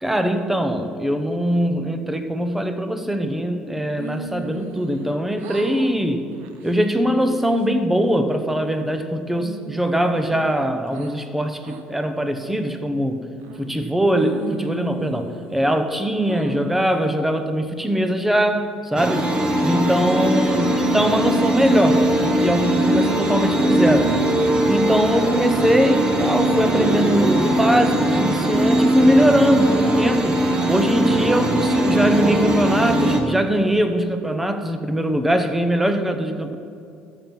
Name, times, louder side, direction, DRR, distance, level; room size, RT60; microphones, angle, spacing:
voice 1, 0.0-6.3 6.6-13.2 13.6-19.3 19.6-24.2 24.7-30.4 30.7-36.6, equal, 5° right, 8 dB, 0.7 m, -21 dB
sound 1, 4.0-5.1 5.4-5.9 6.3-6.7 7.2-7.7 8.2-9.0 9.4-11.1 11.6-11.8 12.4-12.8 13.4-13.9 14.2-15.8 16.3-16.9, right 4 dB, 85° right, 0.9 m, -37 dB
sound 2, 19.0-33.2, right 1 dB, 25° right, 1.2 m, -20 dB
12.5 x 7.4 x 5.4 m, 2.5 s
cardioid pair, 125°, 4 cm